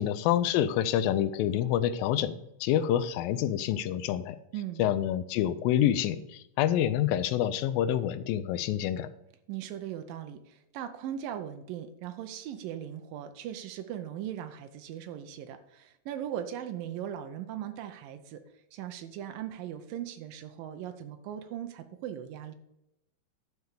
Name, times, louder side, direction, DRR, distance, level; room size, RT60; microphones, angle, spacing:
voice 1, 0.0-4.4 4.8-9.1, left 11 dB, 90° left, 12 dB, 2.3 m, -27 dB
voice 2, 4.5-4.8 9.5-18.4 18.7-22.5, right 10 dB, 90° right, 8 dB, 2.4 m, -39 dB
11.5 x 4.6 x 6.8 m, 0.83 s
omnidirectional pair, 4.0 m